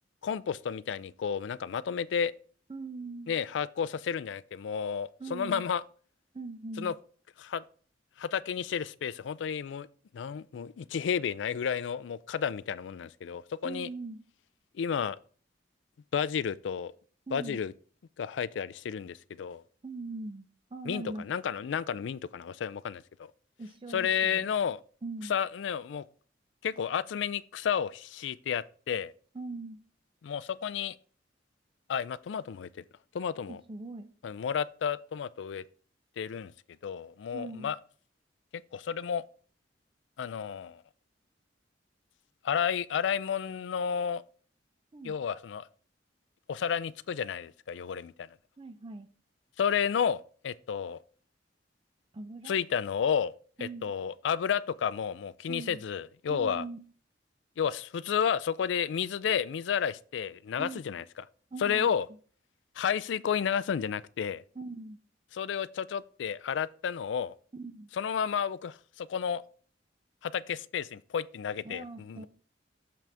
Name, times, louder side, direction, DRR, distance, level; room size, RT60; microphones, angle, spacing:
voice 1, 0.2-2.3 3.3-5.8 6.8-6.9 7.4-7.6 8.2-9.9 10.1-13.9 14.7-15.2 16.1-16.9 17.3-17.7 18.2-19.6 20.9-23.3 23.9-24.8 25.3-26.0 26.6-29.1 30.2-31.0 31.9-32.7 33.1-33.6 34.2-35.6 36.2-36.5 36.8-37.8 38.7-39.2 40.2-40.8 42.4-44.2 45.0-45.7 46.5-48.3 49.6-51.0 52.4-53.3 53.6-56.6 57.6-61.2 61.6-62.1 62.8-64.4 65.3-67.3 67.9-69.4 70.2-72.3, left 7 dB, 75° left, 0.3 m, -31 dB
voice 2, 2.7-3.3 5.2-5.7 6.3-6.9 13.6-14.2 17.3-17.6 19.8-21.3 23.6-24.4 25.0-25.4 29.3-29.8 33.5-34.1 37.3-37.7 44.9-45.1 48.6-49.1 52.1-52.5 53.6-53.9 55.5-55.8 56.3-56.8 60.6-60.8 61.5-61.9 64.6-65.0 67.5-67.9 71.6-72.3, right 3 dB, 30° right, 0.5 m, -41 dB
7.0 x 6.0 x 3.4 m
head